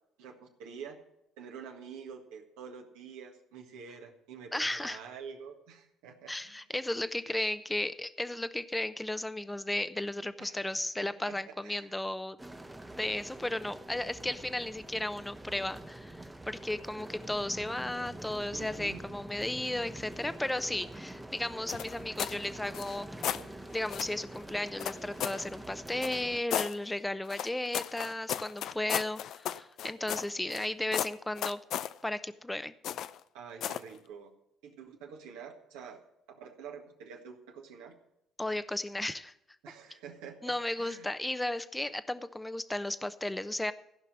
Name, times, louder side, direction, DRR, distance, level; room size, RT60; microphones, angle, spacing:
voice 1, 0.2-1.0 1.4-6.6 7.2-7.4 10.4-11.9 18.5-19.0 33.3-34.3 34.6-36.0 36.3-37.9 39.6-41.1, right 6 dB, 80° right, 2 dB, 1.7 m, -47 dB
voice 2, 4.5-5.0 6.3-12.4 13.0-23.1 23.7-31.6 32.0-32.7 38.4-39.3 40.4-43.7, left 1 dB, 10° left, 13 dB, 0.8 m, -34 dB
sound 1, 12.4-26.4, right 1 dB, 10° right, 1.1 m, -46 dB
sound 2, 21.7-22.4 22.7-23.4 23.9-24.2 24.8-25.4 26.0-26.7 27.3-30.7 30.9-31.9 32.8-33.2 33.6-33.9, left 10 dB, 65° left, 0.4 m, -35 dB
15.0 x 5.6 x 7.5 m, 0.83 s
hypercardioid pair, 60°, 0 cm